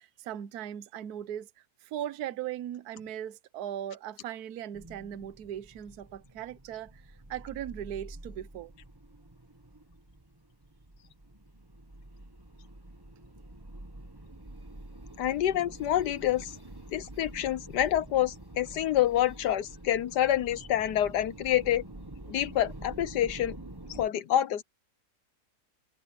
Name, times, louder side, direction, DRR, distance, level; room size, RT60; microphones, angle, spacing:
voice 1, 0.0-1.5 1.8-7.0 7.3-8.7, right 10 dB, 65° right, 1.3 m, -38 dB
sound 1, 4.7-24.1, right 1 dB, 15° right, 1.7 m, -47 dB
voice 2, 15.2-16.5 16.9-21.8 22.3-23.6 23.9-24.6, left 12 dB, 75° left, 1.5 m, -27 dB
omnidirectional pair, 1.8 m